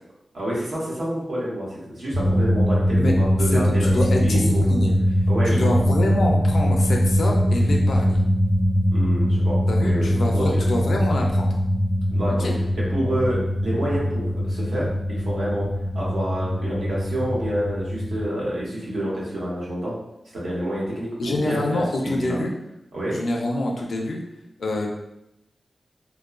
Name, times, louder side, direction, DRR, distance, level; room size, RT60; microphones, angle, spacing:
voice 1, 0.3-4.8 5.3-5.7 8.9-10.6 12.1-12.5 12.7-15.7 15.9-20.0 20.3-22.4 22.9-23.2, right 1 dB, 85° right, -6 dB, 1.0 m, -28 dB
sound 1, 2.1-18.3, equal, 50° right, 1.2 m, -22 dB
voice 2, 3.5-4.9 5.4-8.2 9.7-11.5 12.4-12.6 21.2-22.5 23.1-24.2 24.6-24.9, left 1 dB, 80° left, 0 dB, 0.4 m, -26 dB
2.9 x 2.1 x 2.4 m, 0.86 s
wide cardioid pair, 130°, 0 cm